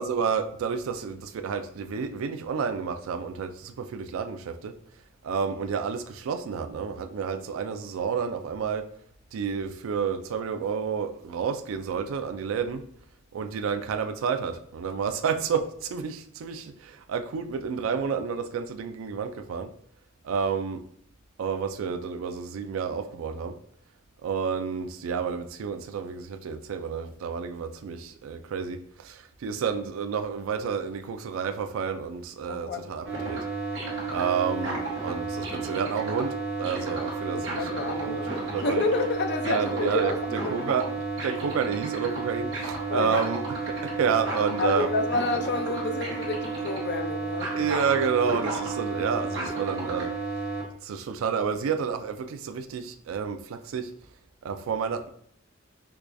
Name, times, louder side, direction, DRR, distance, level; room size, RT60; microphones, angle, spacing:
voice 1, 0.0-4.7 5.2-8.9 9.3-12.8 13.3-19.7 20.2-20.8 21.4-23.5 24.2-33.4 34.1-37.6 37.9-38.8 39.5-40.1 40.5-40.9 41.2-44.9 47.6-50.1 50.8-53.9 54.4-55.1, right 6 dB, 85° right, 9 dB, 0.3 m, -30 dB
voice 2, 32.5-32.9 37.3-40.7 42.9-43.3 44.6-47.7, left 3 dB, 55° left, 6 dB, 0.4 m, -30 dB
sound 1, 33.0-50.6, right 3 dB, 65° right, 1.0 m, -32 dB
4.6 x 2.3 x 2.5 m, 0.66 s
head